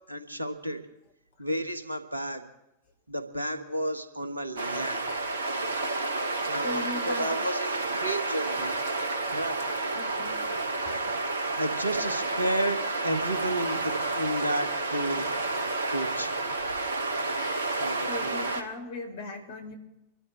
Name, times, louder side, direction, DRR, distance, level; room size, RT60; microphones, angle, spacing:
voice 1, 0.1-0.8 1.4-2.4 3.1-5.0 6.5-8.8 9.3-9.7 11.5-15.3 15.9-16.3 17.8-18.4, right 1 dB, 85° right, 7 dB, 1.5 m, -32 dB
sound 1, 4.6-18.6, right 2 dB, 65° right, 1.6 m, -30 dB
voice 2, 6.6-7.3 9.9-10.5 17.3-19.8, left 2 dB, 60° left, 2 dB, 4.0 m, -39 dB
26.5 x 13.0 x 3.3 m, 0.88 s
figure-of-eight pair, 90°, 0 cm